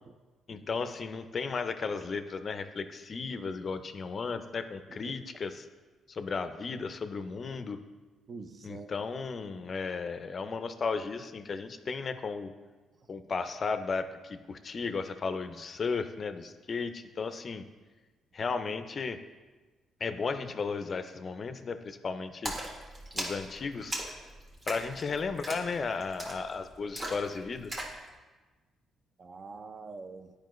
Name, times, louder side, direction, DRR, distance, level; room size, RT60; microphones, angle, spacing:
voice 1, 0.5-5.7 6.1-7.8 8.6-12.5 13.1-17.6 18.3-19.2 20.0-22.5 23.1-24.0 24.7-27.9, left 4 dB, 45° left, 10 dB, 0.4 m, -35 dB
voice 2, 8.3-8.9 9.5-9.7 29.2-30.3, right 4 dB, 45° right, 7 dB, 0.5 m, -45 dB
Splash splatter, 22.4-28.0, right 1 dB, 30° right, 1.3 m, -39 dB
9.0 x 4.8 x 3.1 m, 1.3 s
cardioid pair, 90°, 0 cm